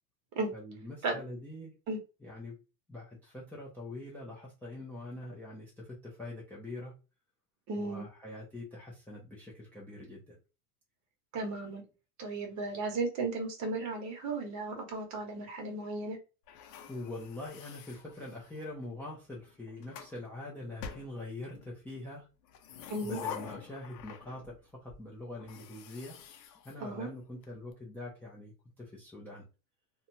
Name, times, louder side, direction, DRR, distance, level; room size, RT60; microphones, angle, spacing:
voice 1, 0.5-1.7 2.2-2.6 2.9-6.9 7.8-10.4 16.9-22.3 22.7-26.2 26.6-29.5, left 2 dB, 5° left, -4 dB, 0.5 m, -44 dB
voice 2, 7.7-8.1 11.3-11.8 12.2-16.2 22.9-23.2 26.8-27.1, right 3 dB, 35° right, 3 dB, 1.0 m, -35 dB
Sci-Fi Doors-Airlock Sound Effect, 16.5-18.7 19.5-20.2 20.8-21.7 22.4-24.6 24.9-25.0 25.4-27.4, left 8 dB, 80° left, 0.7 m, -47 dB
2.7 x 2.3 x 2.6 m, 0.31 s
supercardioid pair, 115°, 48 cm